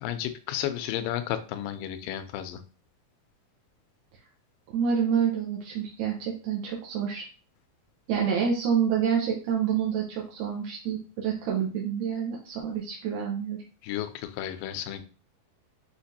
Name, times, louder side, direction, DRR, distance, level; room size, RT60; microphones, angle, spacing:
voice 1, 0.0-2.6 13.8-15.0, left 11 dB, 80° left, 9 dB, 2.1 m, -32 dB
voice 2, 4.7-7.3 8.1-13.6, right 7 dB, 75° right, -2 dB, 1.8 m, -28 dB
6.3 x 2.5 x 2.7 m, 0.36 s
omnidirectional pair, 4.2 m